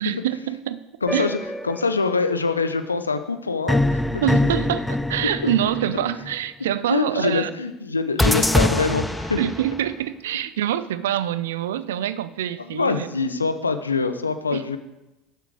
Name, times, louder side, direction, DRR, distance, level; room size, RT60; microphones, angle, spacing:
voice 1, 0.0-0.8 1.1-1.3 4.2-7.5 9.4-13.1 14.5-14.6, right 11 dB, 70° right, 15 dB, 0.4 m, -25 dB
voice 2, 1.0-1.4 1.6-4.2 4.6-4.7 5.4-5.5 6.9-9.4 12.6-14.8, left 4 dB, 85° left, 10 dB, 0.6 m, -24 dB
sound 1, 1.1-2.1 3.7-6.3 8.2-9.9, left 1 dB, 5° left, 0.5 m, -24 dB
11.0 x 6.9 x 4.8 m, 0.97 s
figure-of-eight pair, 65°, 0 cm